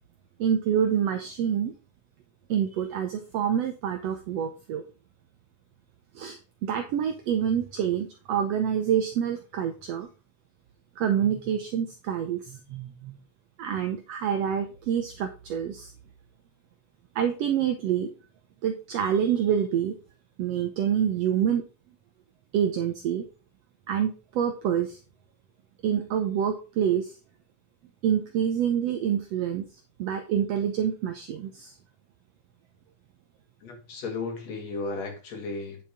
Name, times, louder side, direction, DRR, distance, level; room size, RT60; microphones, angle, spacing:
voice 1, 0.4-1.7 2.5-4.8 6.2-10.1 11.0-13.2 13.6-15.9 17.2-18.1 18.6-20.0 20.4-21.6 22.5-23.3 23.9-25.0 25.8-27.2 28.0-29.7 30.0-31.7, right 9 dB, 70° right, 1.8 m, -27 dB
voice 2, 33.6-35.9, left 3 dB, 60° left, 3.4 m, -34 dB
9.4 x 6.9 x 3.6 m
omnidirectional pair, 3.4 m